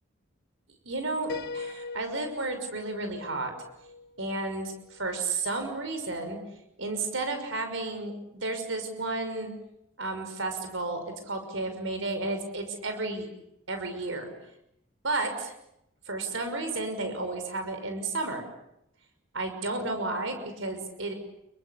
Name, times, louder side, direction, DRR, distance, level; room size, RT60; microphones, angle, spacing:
voice 1, 0.8-3.5 4.2-6.4 6.8-9.5 10.0-11.0 11.3-13.3 13.7-14.3 15.0-15.5 16.1-18.4 19.3-21.1, right 2 dB, 70° right, 6 dB, 6.1 m, -32 dB
Piano, 1.3-5.0, left 4 dB, 55° left, 1.7 m, -41 dB
28.5 x 23.5 x 8.5 m, 0.81 s
head